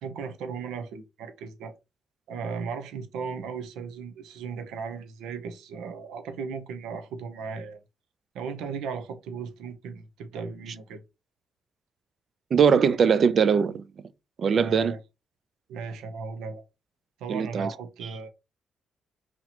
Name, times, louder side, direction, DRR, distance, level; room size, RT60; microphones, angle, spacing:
voice 1, 0.0-1.7 2.3-7.8 8.3-11.0 14.5-15.0 15.7-16.6 17.2-18.3, right 5 dB, 90° right, 0.7 m, -36 dB
voice 2, 12.5-13.8 14.4-14.9 17.3-17.7, right 6 dB, 55° right, 0.4 m, -21 dB
2.9 x 2.9 x 4.2 m
cardioid pair, 90°, 0 cm